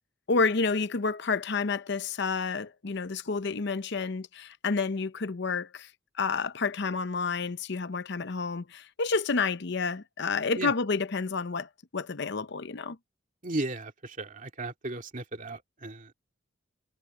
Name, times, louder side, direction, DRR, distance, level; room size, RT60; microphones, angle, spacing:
voice 1, 0.3-5.9 6.2-13.0, left 4 dB, 60° left, 0.7 m, -29 dB
voice 2, 13.4-16.1, right 2 dB, 40° right, 2.4 m, -35 dB
head